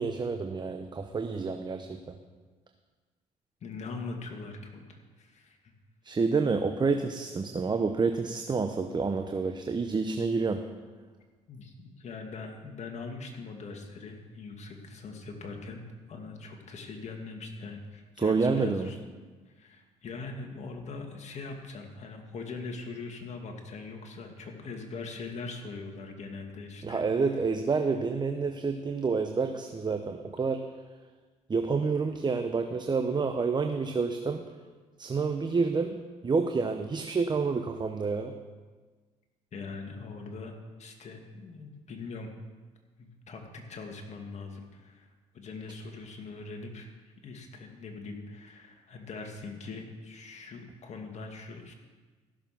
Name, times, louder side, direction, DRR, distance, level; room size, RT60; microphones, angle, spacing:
voice 1, 0.0-2.1 6.0-10.6 18.2-18.9 26.8-30.7 31.5-34.4 35.0-38.3, right 4 dB, 30° right, 6 dB, 0.9 m, -28 dB
voice 2, 3.6-5.6 11.5-15.8 16.1-19.0 19.6-27.0 39.5-40.5 40.8-42.3 43.0-45.1 45.3-46.9 47.2-51.7, left 4 dB, 50° left, 3 dB, 2.3 m, -41 dB
15.5 x 6.8 x 6.0 m, 1.4 s
supercardioid pair, 70°, 15 cm